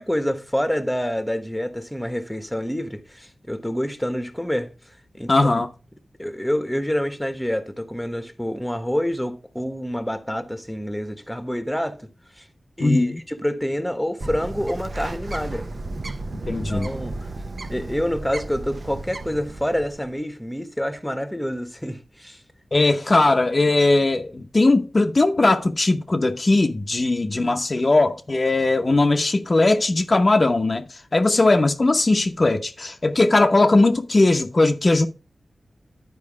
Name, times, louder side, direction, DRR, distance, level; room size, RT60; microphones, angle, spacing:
voice 1, 0.0-4.7 5.2-5.3 6.2-12.1 12.4-12.5 12.8-15.7 16.7-17.2 17.7-22.4, equal, 5° left, 1.1 m, -27 dB
voice 2, 5.3-5.7 12.8-13.1 16.5-16.9 22.7-35.1, left 2 dB, 40° left, 0.8 m, -19 dB
Bird, 14.2-20.1, right 2 dB, 50° right, 0.7 m, -33 dB
11.0 x 4.7 x 4.7 m
wide cardioid pair, 80°, 0 cm